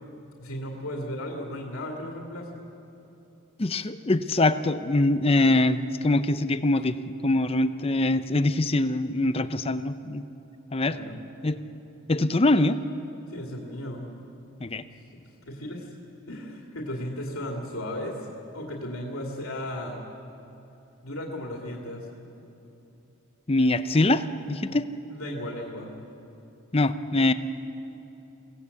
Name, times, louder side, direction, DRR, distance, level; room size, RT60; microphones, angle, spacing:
voice 1, 0.4-2.6 10.9-11.2 13.3-14.1 15.4-15.9 16.3-18.2 18.5-20.0 21.0-22.1 24.7-24.8 25.1-25.9, left 1 dB, 75° left, 0 dB, 2.4 m, -35 dB
voice 2, 3.6-10.2 10.7-11.0 11.4-11.6 12.1-12.8 14.6-14.8 23.5-24.9 26.7-27.3, left 2 dB, 25° left, 12 dB, 0.6 m, -23 dB
23.0 x 17.0 x 8.3 m, 2.9 s
head